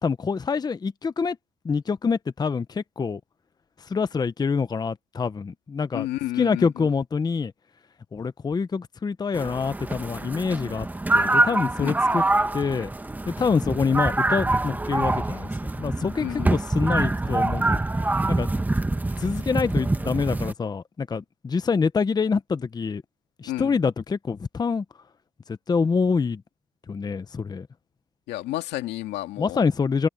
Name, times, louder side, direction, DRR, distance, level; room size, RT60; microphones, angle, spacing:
voice 1, 0.0-1.4 1.6-3.2 3.8-6.1 6.4-7.5 8.1-10.9 11.1-12.2 12.5-12.9 13.3-15.5 15.8-17.8 18.3-18.5 19.2-23.0 23.4-24.8 25.7-26.4 26.9-27.7 29.4-30.1, left 5 dB, 25° left, 0.8 m, -26 dB
voice 2, 5.9-6.9 11.8-11.9 16.2-16.5 23.5-23.8 28.3-29.6, left 16 dB, 85° left, 2.3 m, -31 dB
sound 1, 9.3-20.5, right 2 dB, 10° right, 1.1 m, -25 dB
open air
cardioid pair, 110°, 17 cm